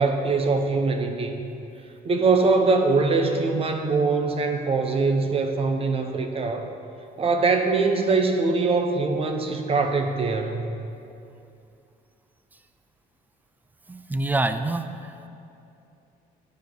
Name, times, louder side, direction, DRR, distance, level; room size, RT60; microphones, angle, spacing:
voice 1, 0.0-1.3 2.0-6.7 7.2-10.6, right 4 dB, 35° right, 5 dB, 0.8 m, -22 dB
voice 2, 13.9-15.1, right 2 dB, 10° right, 10 dB, 0.4 m, -26 dB
9.4 x 5.1 x 6.1 m, 2.6 s
cardioid pair, 110°, 17 cm